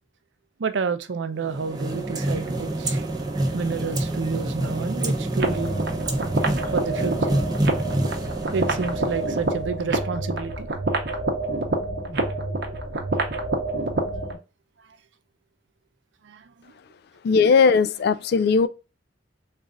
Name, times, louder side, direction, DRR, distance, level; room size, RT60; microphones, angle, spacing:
voice 1, 0.6-3.1 3.5-5.9 6.7-7.4 8.5-10.7 16.2-16.7, right 5 dB, 85° right, 0.5 m, -30 dB
sound 1, 1.4-9.7, right 1 dB, 20° right, 0.6 m, -27 dB
sound 2, 5.3-14.4, right 2 dB, 65° right, 0.8 m, -27 dB
voice 2, 17.2-18.7, left 5 dB, 60° left, 0.3 m, -18 dB
3.1 x 2.5 x 3.6 m
head